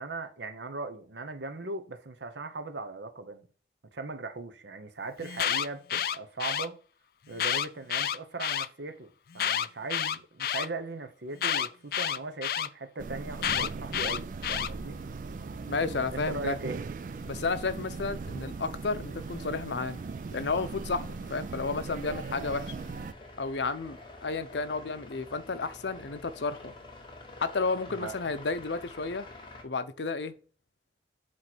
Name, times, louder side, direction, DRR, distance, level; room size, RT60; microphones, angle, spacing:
voice 1, 0.0-3.5 3.9-6.8 7.3-15.0 16.1-16.8 27.9-28.2, right 3 dB, 85° right, 1.0 m, -39 dB
Alarm, 5.2-6.7 7.3-8.7 9.3-10.7 11.4-12.7 13.4-14.7, left 9 dB, 55° left, 0.4 m, -29 dB
sound 1, 13.0-23.1, right 4 dB, 45° right, 0.3 m, -39 dB
sound 2, 14.2-29.6, left 2 dB, 30° left, 1.3 m, -50 dB
voice 2, 15.7-16.6 17.3-20.0 20.3-22.7 23.4-26.7 27.4-29.3 29.6-30.3, left 4 dB, 85° left, 0.7 m, -32 dB
8.5 x 3.2 x 6.0 m
head